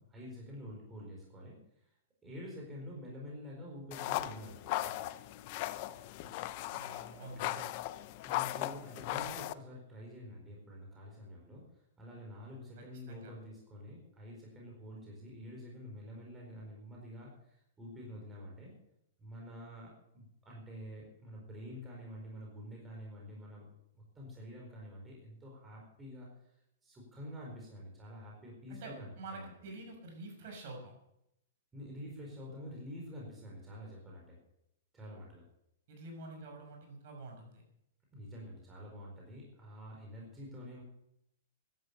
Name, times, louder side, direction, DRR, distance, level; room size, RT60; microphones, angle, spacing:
voice 1, 0.0-1.9 2.2-5.2 7.3-7.6 8.2-18.7 19.2-23.7 24.0-26.3 26.8-29.5 31.7-34.4 34.9-35.4 36.4-36.5 38.1-40.8, equal, 10° right, -2 dB, 4.6 m, -48 dB
sound 1, 3.9-9.5, left 16 dB, 40° left, 0.7 m, -38 dB
voice 2, 6.7-7.7 12.8-13.3 28.7-30.9 35.9-37.6, right 2 dB, 50° right, 2 dB, 6.7 m, -48 dB
14.5 x 11.5 x 6.9 m, 0.80 s
hypercardioid pair, 155°, 0 cm